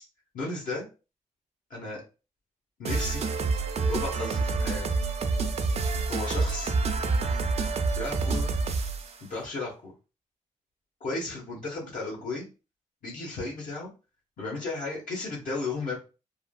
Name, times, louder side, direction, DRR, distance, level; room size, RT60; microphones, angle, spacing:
voice 1, 0.3-0.8 1.7-2.0 2.8-3.2 3.9-4.9 6.1-6.7 7.9-8.5 9.2-9.9 11.0-12.5 13.0-13.9 14.4-16.0, left 3 dB, 70° left, -3 dB, 1.2 m, -34 dB
sound 1, 2.8-9.1, right 4 dB, 45° right, 0.5 m, -27 dB
3.4 x 2.3 x 2.3 m, 0.31 s
cardioid pair, 70°, 14 cm